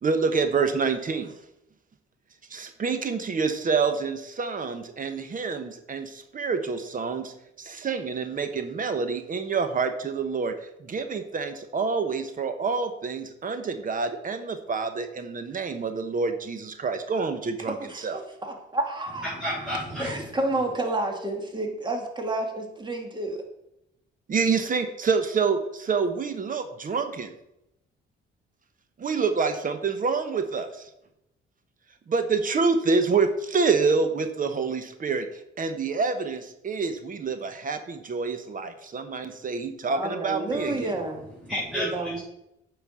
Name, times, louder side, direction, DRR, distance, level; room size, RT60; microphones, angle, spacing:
voice 1, 0.0-1.3 2.5-18.2 24.3-27.3 29.0-30.9 32.1-35.3 35.6-40.9, right 4 dB, 45° right, 8 dB, 1.1 m, -27 dB
voice 2, 17.7-19.3 20.0-23.4 39.9-41.2 41.7-42.2, right 2 dB, 25° right, 3 dB, 2.2 m, -30 dB
voice 3, 19.2-20.3 40.8-40.9 41.4-42.2, equal, ahead, -8 dB, 4.0 m, -31 dB
9.0 x 5.3 x 6.3 m, 0.83 s
cardioid pair, 90°, 20 cm